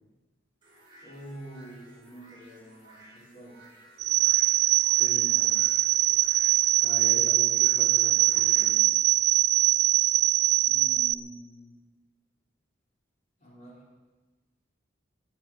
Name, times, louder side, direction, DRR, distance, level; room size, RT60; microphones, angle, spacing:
sound 1, 0.6-8.7, right 1 dB, 25° right, 6.9 m, -54 dB
voice 1, 1.0-3.7 5.0-5.5 10.6-11.8 13.4-13.9, right 1 dB, 35° left, -3 dB, 4.3 m, -46 dB
sound 2, 4.0-11.1, right 15 dB, 55° right, 0.6 m, -22 dB
voice 2, 5.0-5.6 6.8-8.9, left 1 dB, 10° left, -2 dB, 2.5 m, -41 dB
17.5 x 8.8 x 8.7 m, 1.3 s
head